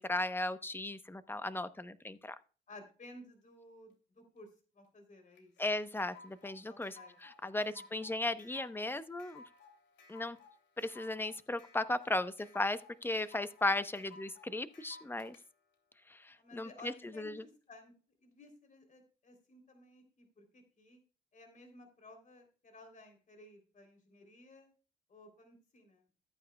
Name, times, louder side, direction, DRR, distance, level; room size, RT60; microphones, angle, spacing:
voice 1, 0.0-2.3 5.6-9.4 10.1-10.4 10.8-15.3 16.1-17.4, left 2 dB, 10° left, 13 dB, 0.8 m, -36 dB
voice 2, 2.7-4.5 4.7-5.5 6.6-7.2 7.5-7.8 16.4-17.9 18.2-21.0 21.3-24.7 25.1-26.1, left 2 dB, 40° left, 5 dB, 3.2 m, -56 dB
sound 1, 5.4-15.4, left 4 dB, 65° left, 2.5 m, -57 dB
14.0 x 9.1 x 2.3 m, 0.36 s
cardioid pair, 90°, 20 cm